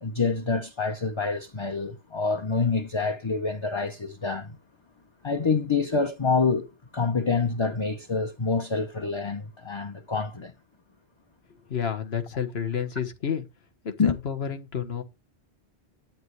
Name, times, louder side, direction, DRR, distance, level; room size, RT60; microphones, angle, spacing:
voice 1, 0.0-4.6 5.2-10.5 14.0-14.2, left 4 dB, 30° left, 0.8 m, -27 dB
voice 2, 11.7-13.4 13.8-15.0, left 7 dB, 65° left, 1.7 m, -30 dB
10.5 x 9.4 x 3.2 m
omnidirectional pair, 1.1 m